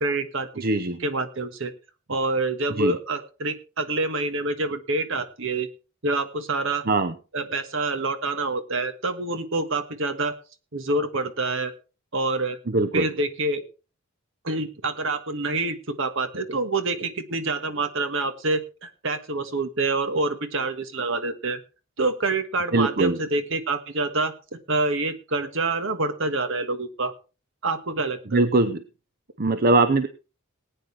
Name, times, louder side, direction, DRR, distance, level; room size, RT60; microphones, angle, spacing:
voice 1, 0.0-0.6 1.0-1.7 2.1-5.7 6.0-6.8 7.3-10.3 10.7-11.7 12.1-12.6 12.9-13.6 14.4-21.6 22.0-27.1 27.6-28.4, right 2 dB, 65° right, 10 dB, 1.6 m, -27 dB
voice 2, 0.6-1.0 2.8-2.9 6.9-7.1 12.7-13.1 22.7-23.2 28.3-28.8 29.4-30.1, right 2 dB, 45° right, 11 dB, 0.7 m, -21 dB
19.5 x 9.3 x 3.3 m, 0.33 s
head